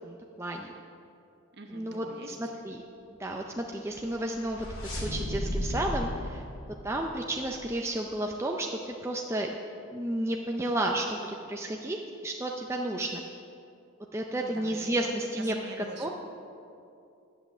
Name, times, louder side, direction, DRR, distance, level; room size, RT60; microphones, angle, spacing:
voice 1, 0.0-0.7 1.7-2.8 3.2-6.4 6.8-9.5 9.9-11.2 11.5-13.2 14.1-15.5 16.0-16.1, right 1 dB, 10° right, 1 dB, 0.4 m, -32 dB
voice 2, 1.5-2.5 14.4-16.1, right 2 dB, 50° right, 4 dB, 1.1 m, -44 dB
sound 1, 4.0-7.6, equal, 70° left, 2.4 m, -35 dB
10.5 x 7.6 x 7.1 m, 2.6 s
head